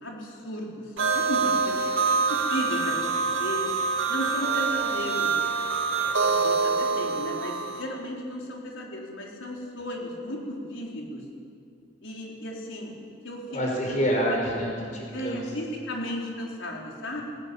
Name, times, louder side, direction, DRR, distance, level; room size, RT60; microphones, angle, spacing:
voice 1, 0.0-0.8 1.1-3.1 3.4-3.6 4.1-5.5 6.0-11.2 12.0-12.9 13.2-13.4 13.9-14.4 15.1-17.2, left 1 dB, 75° left, -1 dB, 4.7 m, -35 dB
sound 1, 1.0-7.8, right 4 dB, 90° right, 2.4 m, -25 dB
voice 2, 13.5-15.4, equal, 40° left, -1 dB, 5.7 m, -27 dB
19.0 x 18.5 x 8.9 m, 2.4 s
head